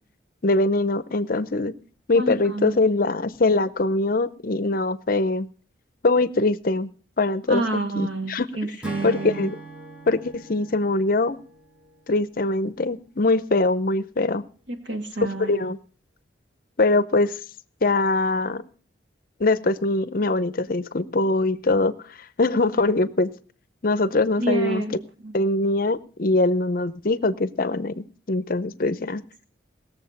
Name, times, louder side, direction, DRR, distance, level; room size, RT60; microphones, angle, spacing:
voice 1, 0.4-1.7 2.1-5.5 6.0-6.9 7.2-8.5 9.0-9.5 10.1-11.4 12.1-14.4 15.2-15.8 16.8-17.4 17.8-18.6 19.4-21.9 22.4-23.3 23.8-24.8 25.3-29.2, left 2 dB, 50° left, 16 dB, 0.6 m, -22 dB
voice 2, 2.1-2.8 7.5-9.5 14.7-15.7 24.4-25.0 25.2-25.3, right 2 dB, 80° right, 5 dB, 2.2 m, -28 dB
Acoustic guitar / Strum, 8.8-12.3, right 2 dB, 5° right, 1.2 m, -41 dB
19.0 x 7.2 x 6.6 m, 0.43 s
head